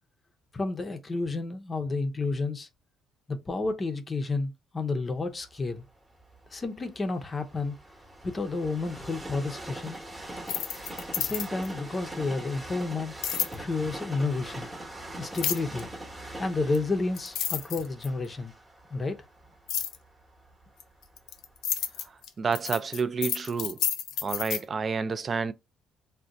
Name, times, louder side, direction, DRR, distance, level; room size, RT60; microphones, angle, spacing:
voice 1, 0.5-2.7 3.3-5.8 6.5-7.7 8.2-10.0 11.2-13.1 13.5-14.7 15.2-15.9 16.4-18.5 18.9-19.2, left 3 dB, 25° left, 0.5 m, -31 dB
Train, 5.4-21.4 22.0-22.1, right 1 dB, 15° right, 0.9 m, -43 dB
sound 1, 10.4-11.7 13.2-13.5 15.3-15.8 16.7-16.8 17.2-18.3 19.7-20.0 20.8-24.6, left 9 dB, 75° left, 0.4 m, -30 dB
voice 2, 22.4-23.8 24.2-25.5, right 5 dB, 35° right, 0.3 m, -29 dB
2.5 x 2.1 x 3.9 m
cardioid pair, 95°, 0 cm